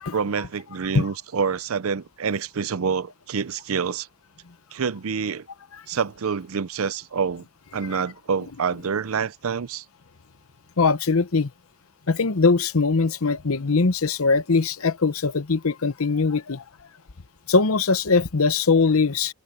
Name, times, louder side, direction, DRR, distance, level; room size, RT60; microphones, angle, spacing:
voice 1, 0.1-4.1 4.7-5.5 5.9-7.4 7.7-9.8, right 6 dB, 80° right, 0.6 m, -27 dB
voice 2, 10.8-11.5 12.1-16.6 17.5-19.3, left 4 dB, 85° left, 0.9 m, -21 dB
open air
head